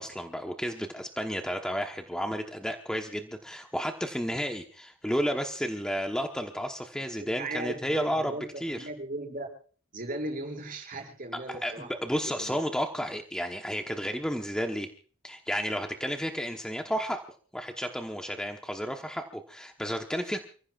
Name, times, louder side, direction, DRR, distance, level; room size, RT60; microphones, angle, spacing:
voice 1, 0.0-8.3 8.6-8.9 11.5-14.9 15.2-17.2 17.5-20.4, equal, 5° left, 3 dB, 1.1 m, -32 dB
voice 2, 7.2-9.5 9.9-11.9 12.2-12.6, right 2 dB, 40° right, 1 dB, 6.9 m, -37 dB
29.5 x 15.5 x 2.5 m, 0.43 s
head